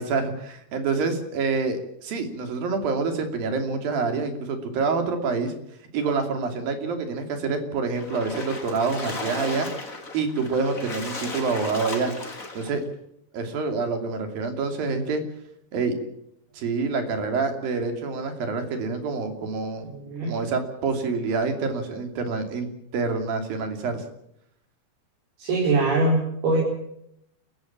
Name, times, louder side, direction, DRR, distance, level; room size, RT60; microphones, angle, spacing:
voice 1, 0.0-5.5 5.9-9.7 10.1-12.1 12.6-12.8 13.3-15.2 15.7-16.0 16.5-19.9 20.2-24.0, right 4 dB, 70° right, 6 dB, 4.5 m, -27 dB
Splash splatter, 7.9-12.8, left 3 dB, 20° left, 3.2 m, -35 dB
voice 2, 19.8-20.4 25.4-26.6, right 2 dB, 90° right, -3 dB, 7.1 m, -23 dB
29.5 x 15.0 x 7.4 m, 0.76 s
omnidirectional pair, 4.4 m